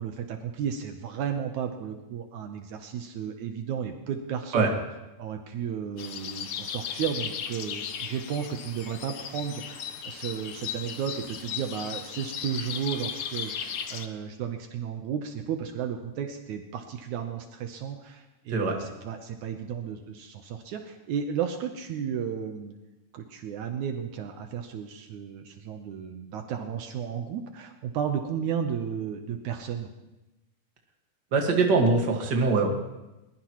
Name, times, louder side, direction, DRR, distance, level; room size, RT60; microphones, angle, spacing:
voice 1, 0.0-4.7 5.2-22.8 23.1-29.9, right 8 dB, 75° right, 5 dB, 2.3 m, -33 dB
sound 1, 6.0-14.1, left 8 dB, 75° left, 1.2 m, -36 dB
voice 2, 31.3-32.7, right 3 dB, 40° right, 1 dB, 2.1 m, -22 dB
21.5 x 21.0 x 3.1 m, 1.0 s
omnidirectional pair, 3.6 m